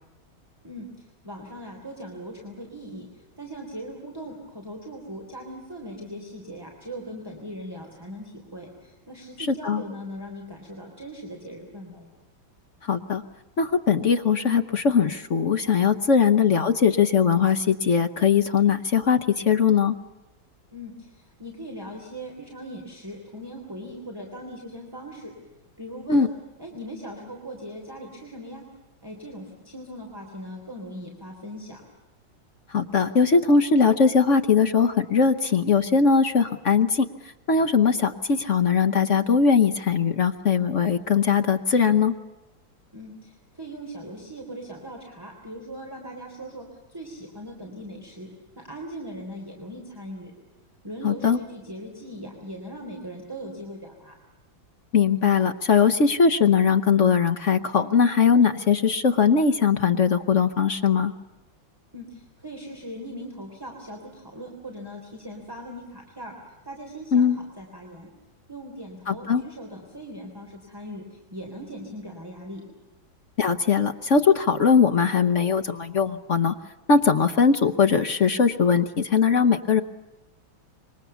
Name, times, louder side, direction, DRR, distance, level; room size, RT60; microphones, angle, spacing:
voice 1, 0.6-12.1 20.7-25.3 25.8-26.3 26.6-28.6 29.0-31.8 42.9-48.3 48.6-50.3 50.8-54.2 61.9-67.3 67.6-68.1 68.5-72.6, equal, 10° right, -1 dB, 3.7 m, -39 dB
voice 2, 9.5-9.8 12.8-13.2 13.6-19.9 26.1-26.3 32.7-37.1 37.5-42.1 51.0-51.4 54.9-61.1 67.1-67.4 69.1-69.4 73.4-76.5 76.9-79.8, left 6 dB, 50° left, 8 dB, 1.0 m, -20 dB
26.5 x 23.5 x 7.0 m, 1.1 s
omnidirectional pair, 2.2 m